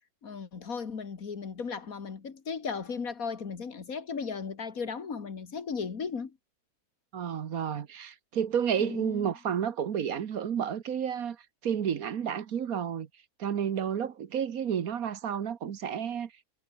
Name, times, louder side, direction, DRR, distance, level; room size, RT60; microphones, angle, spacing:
voice 1, 0.2-6.4 8.8-9.3, left 5 dB, 65° left, 2.3 m, -36 dB
voice 2, 7.1-11.4 11.6-13.1 13.4-16.3, right 8 dB, 65° right, 1.6 m, -31 dB
omnidirectional pair, 1.6 m